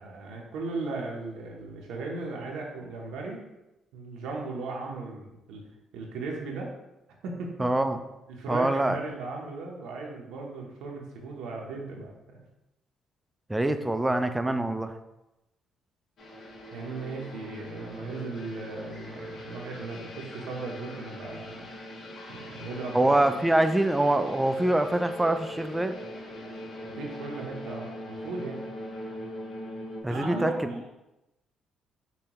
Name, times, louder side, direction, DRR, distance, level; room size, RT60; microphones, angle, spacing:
voice 1, 0.0-3.4 3.9-5.6 5.9-6.7 7.2-7.7 8.3-12.4 16.7-21.7 22.3-23.0 27.0-28.6 30.1-30.9, right 3 dB, 85° right, -1 dB, 0.7 m, -37 dB
voice 2, 7.6-8.0 8.5-9.0 13.5-14.9 22.9-26.0 30.0-30.9, right 1 dB, 10° right, 8 dB, 0.3 m, -25 dB
sound 1, 16.2-30.0, left 1 dB, 60° left, 0.8 m, -41 dB
5.4 x 2.2 x 2.9 m, 0.95 s
cardioid pair, 80°, 0 cm